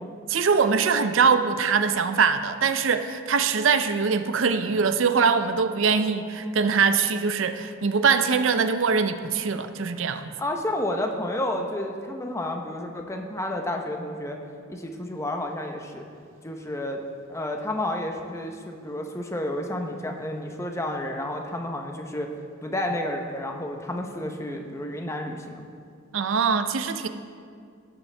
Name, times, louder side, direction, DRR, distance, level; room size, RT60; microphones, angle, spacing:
voice 1, 0.3-10.3 26.1-27.1, right 5 dB, 70° right, 10 dB, 0.5 m, -22 dB
voice 2, 10.4-14.4 14.7-16.0 16.4-17.0 17.3-22.3 22.6-25.6, left 1 dB, 15° left, 3 dB, 0.7 m, -31 dB
17.5 x 7.2 x 3.3 m, 2.3 s
head